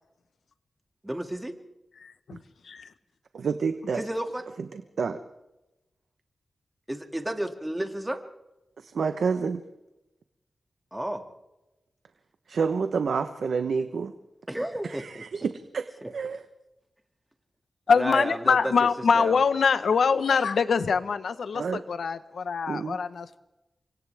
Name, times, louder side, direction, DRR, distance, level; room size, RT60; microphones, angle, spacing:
voice 1, 1.0-1.5 4.0-4.4 6.9-8.2 10.9-11.2 14.5-15.2 16.0-16.1 18.0-18.9 19.1-19.4, right 1 dB, 10° right, 4 dB, 2.4 m, -31 dB
voice 2, 2.0-2.4 2.6-2.9 17.9-23.4, left 5 dB, 85° left, 12 dB, 1.2 m, -24 dB
voice 3, 3.3-4.0 4.7-5.2 8.8-9.6 12.5-14.1 14.8-16.4 21.5-21.8 22.7-23.0, right 5 dB, 80° right, 8 dB, 1.1 m, -29 dB
29.5 x 25.0 x 3.6 m, 0.96 s
wide cardioid pair, 90°, 0 cm